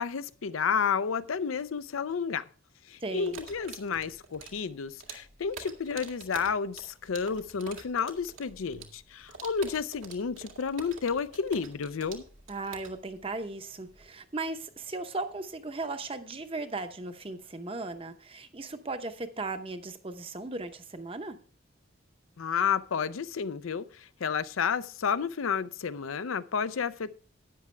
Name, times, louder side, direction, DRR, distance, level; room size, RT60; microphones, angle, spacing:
voice 1, 0.0-2.4 2.9-12.2 22.4-27.1, left 6 dB, 85° left, 0.5 m, -31 dB
voice 2, 3.0-3.4 12.5-21.4, right 3 dB, 25° right, 0.8 m, -37 dB
sound 1, 3.2-14.1, right 5 dB, 80° right, 2.0 m, -47 dB
12.5 x 9.4 x 3.3 m
head